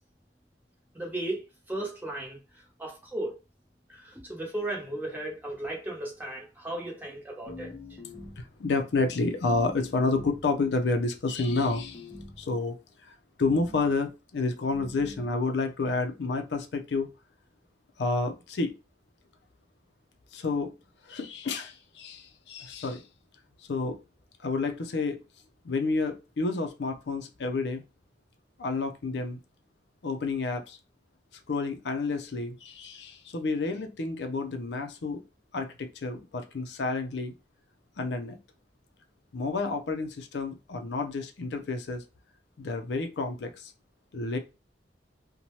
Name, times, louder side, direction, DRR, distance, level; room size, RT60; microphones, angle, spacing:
voice 1, 0.9-3.4 3.9-7.7, right 1 dB, 10° right, 0.9 m, -36 dB
sound 1, 7.5-8.6 9.4-10.5 11.4-12.5 13.4-14.0 14.7-15.3, left 2 dB, 25° left, 0.6 m, -44 dB
voice 2, 8.4-12.1 12.4-12.8 13.0-17.1 18.0-18.7 20.3-20.7 21.0-23.0 23.7-24.0 24.4-25.2 25.6-27.8 28.6-29.4 30.0-30.8 31.5-35.2 35.5-37.3 38.0-38.4 39.3-42.0 42.6-43.7 44.1-44.4, left 3 dB, 75° left, 0.5 m, -30 dB
2.7 x 2.2 x 3.0 m
head